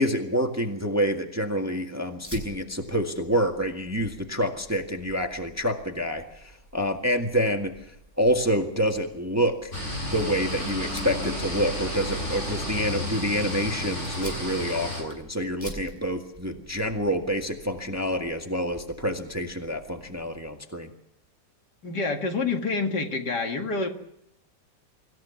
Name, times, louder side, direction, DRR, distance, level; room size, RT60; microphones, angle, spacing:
voice 1, 0.0-6.4 6.7-7.7 8.2-9.7 10.1-20.9, equal, 10° right, 4 dB, 1.6 m, -27 dB
Fire, 2.2-20.5, right 1 dB, 5° left, 7.0 m, -48 dB
sound 1, 9.7-15.0, left 1 dB, 40° left, 7.3 m, -32 dB
voice 2, 21.8-23.9, left 3 dB, 65° left, 4 dB, 2.7 m, -27 dB
25.0 x 15.0 x 7.1 m, 0.79 s
omnidirectional pair, 1.9 m